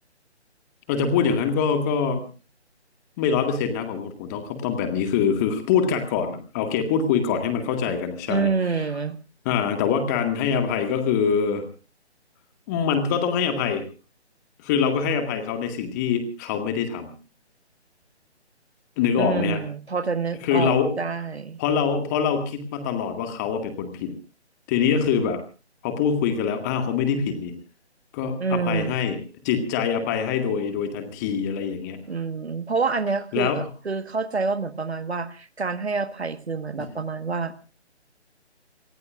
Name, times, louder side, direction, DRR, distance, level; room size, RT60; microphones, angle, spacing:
voice 1, 0.9-2.2 3.2-8.5 9.5-11.6 12.7-13.8 14.6-17.1 19.0-19.6 20.4-21.0 21.6-24.1 24.7-25.4 25.8-27.5 28.1-29.2 29.4-32.0 33.3-33.6 36.8-36.9, left 6 dB, 15° left, 6 dB, 1.9 m, -24 dB
voice 2, 8.3-9.2 19.2-21.6 28.4-29.0 32.1-37.5, right 4 dB, 65° right, 11 dB, 1.6 m, -27 dB
27.5 x 20.0 x 2.5 m, 0.35 s
figure-of-eight pair, 150°, 34 cm